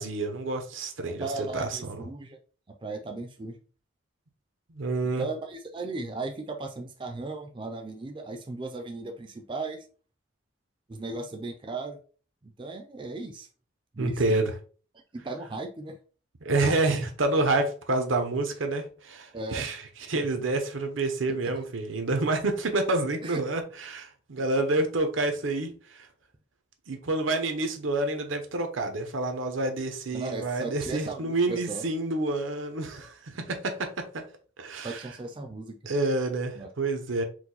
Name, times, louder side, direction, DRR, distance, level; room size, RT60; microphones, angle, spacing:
voice 1, 0.0-1.8 4.7-5.3 14.0-14.5 16.4-19.8 20.1-26.1 26.9-34.2 34.6-35.0 35.9-37.2, right 2 dB, 80° right, 0.8 m, -28 dB
voice 2, 1.2-2.4 2.8-3.5 5.2-9.8 10.9-12.0 12.4-13.5 13.9-14.4 15.1-16.0 19.3-19.6 23.2-23.4 30.1-31.8 34.8-35.8 36.5-36.7, right 3 dB, 25° right, 0.4 m, -36 dB
4.5 x 2.2 x 3.9 m
head